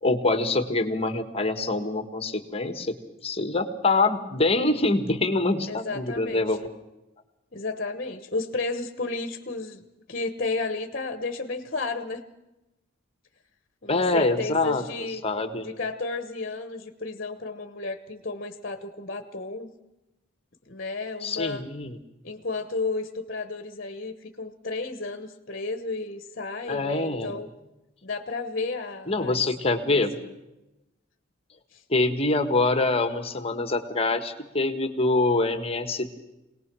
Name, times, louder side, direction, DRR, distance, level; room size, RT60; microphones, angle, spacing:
voice 1, 0.0-3.0 3.2-6.7 13.9-14.8 15.2-15.6 21.2-22.0 26.7-27.3 29.1-30.1 31.9-36.2, left 2 dB, 30° left, 9 dB, 1.4 m, -25 dB
voice 2, 5.7-6.6 7.5-9.8 10.1-12.2 13.8-15.2 15.6-19.7 20.7-21.6 22.2-27.5 28.0-29.4 29.9-30.3 31.7-31.8, left 3 dB, 45° left, 8 dB, 1.2 m, -32 dB
24.5 x 18.5 x 6.2 m, 0.96 s
head